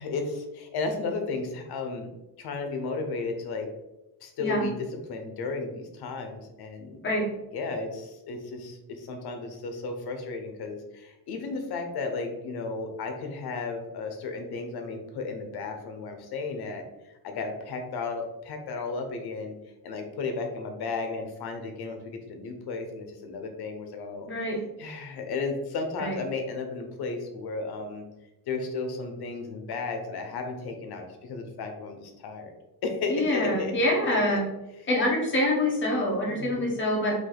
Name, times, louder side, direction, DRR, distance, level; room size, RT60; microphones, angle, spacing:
voice 1, 0.0-2.1 2.4-3.7 4.2-7.0 7.5-16.8 17.2-19.5 19.8-24.3 24.8-28.0 28.5-32.5 32.8-33.7 34.0-34.2 36.3-36.7, left 3 dB, 75° left, 5 dB, 0.8 m, -34 dB
voice 2, 24.3-24.6 26.0-26.2 33.1-34.5 34.9-37.1, left 1 dB, 30° left, -3 dB, 1.3 m, -25 dB
3.8 x 2.9 x 3.8 m, 0.99 s
cardioid pair, 150°, 39 cm